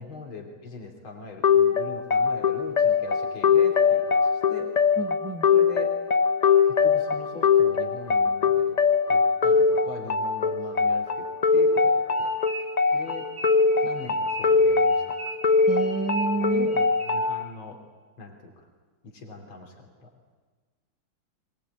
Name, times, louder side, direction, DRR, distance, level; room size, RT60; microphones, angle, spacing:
voice 1, 0.0-4.7 5.5-6.0 6.6-8.8 9.1-12.3 12.9-13.3 13.8-15.2 16.5-17.8 18.2-18.7 19.0-20.1, left 3 dB, 85° left, 2 dB, 3.7 m, -41 dB
sound 1, 1.4-17.4, left 5 dB, 45° left, 0.5 m, -22 dB
voice 2, 5.0-5.5 15.7-16.7, right 4 dB, 10° right, 8 dB, 0.8 m, -29 dB
sound 2, 12.1-17.5, right 3 dB, 55° right, 3.0 m, -40 dB
23.0 x 19.5 x 9.3 m, 1.4 s
omnidirectional pair, 2.2 m